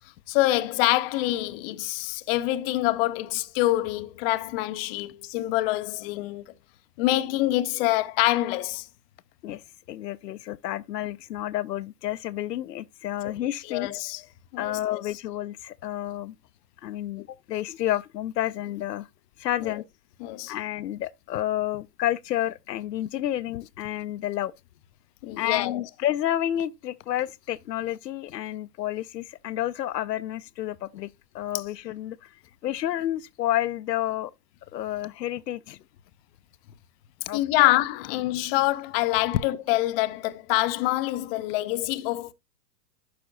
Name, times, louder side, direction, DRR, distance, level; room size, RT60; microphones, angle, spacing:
voice 1, 0.3-6.4 7.0-8.9 13.7-14.2 14.5-15.0 19.6-19.8 20.2-20.5 25.2-25.8 37.3-42.3, left 17 dB, 35° left, 0.7 m, -25 dB
voice 2, 9.4-13.9 14.6-16.3 16.8-19.1 19.4-19.8 20.5-24.5 25.4-31.1 31.3-32.3 32.6-34.3 34.7-35.8 37.3-37.7, left 13 dB, 85° left, 0.6 m, -30 dB
12.0 x 5.0 x 2.5 m
hypercardioid pair, 120°, 48 cm